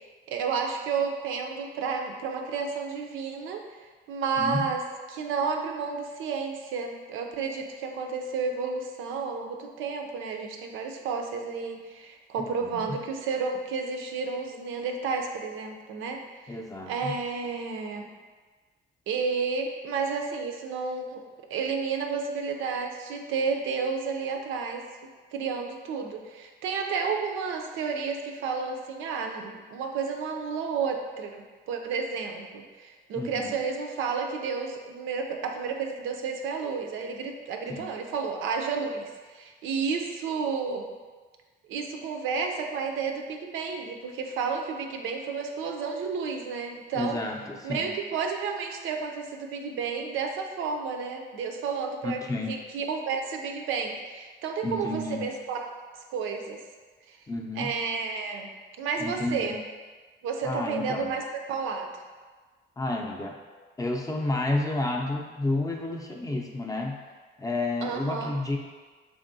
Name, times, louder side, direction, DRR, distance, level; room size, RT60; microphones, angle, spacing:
voice 1, 0.3-3.6 4.1-4.8 5.1-16.6 16.9-18.1 19.1-21.2 21.5-24.8 25.3-40.9 41.7-47.2 47.6-52.2 52.5-55.7 56.1-56.6 57.1-57.2 57.6-58.5 58.8-59.6 60.2-61.9 67.8-68.3, right 5 dB, 90° right, 3 dB, 0.5 m, -31 dB
voice 2, 4.4-4.7 12.4-13.0 16.5-17.1 33.1-33.5 37.7-37.9 46.9-47.9 52.0-52.5 54.6-55.2 57.3-57.7 59.0-59.5 60.4-61.1 62.8-63.4 63.8-67.0 67.4-68.6, left 2 dB, 15° left, 1 dB, 0.5 m, -31 dB
3.5 x 3.4 x 2.6 m, 1.4 s
cardioid pair, 90°, 20 cm